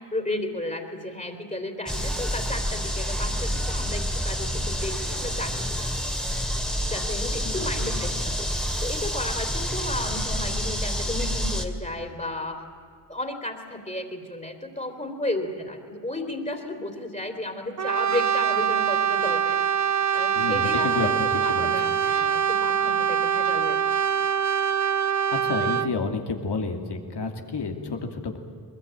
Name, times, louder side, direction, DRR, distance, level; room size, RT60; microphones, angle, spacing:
voice 1, 0.1-5.9 6.9-8.5 8.8-12.6 13.1-21.1 21.4-23.8, left 1 dB, 20° left, 4 dB, 3.4 m, -33 dB
sound 1, 1.9-11.6, equal, ahead, 2.4 m, -28 dB
Brass instrument, 17.8-26.0, right 8 dB, 45° right, 0.7 m, -24 dB
voice 2, 20.4-21.7 25.3-28.4, left 4 dB, 75° left, 4 dB, 2.7 m, -30 dB
22.0 x 21.0 x 9.0 m, 2.3 s
cardioid pair, 55°, 41 cm